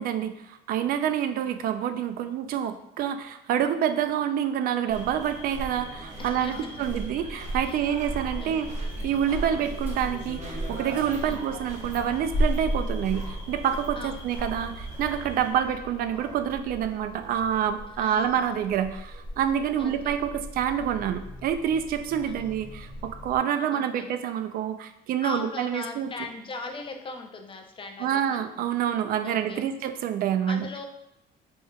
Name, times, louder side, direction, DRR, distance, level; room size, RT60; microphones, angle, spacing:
voice 1, 0.0-8.7 9.0-26.1 28.0-30.7, right 9 dB, 60° right, 10 dB, 0.4 m, -27 dB
voice 2, 1.3-1.6 6.2-6.7 7.6-7.9 8.4-8.7 9.9-10.2 11.2-11.5 14.0-14.3 18.0-18.4 19.8-20.1 22.2-22.5 23.7-24.1 25.2-28.4 29.2-29.7 30.5-30.9, left 3 dB, 30° left, 5 dB, 0.4 m, -40 dB
sound 1, 4.9-15.5, right 2 dB, 45° right, 0.9 m, -37 dB
Dog, 7.6-23.4, equal, 10° right, 1.3 m, -36 dB
4.2 x 3.5 x 2.2 m, 0.85 s
cardioid pair, 110°, 17 cm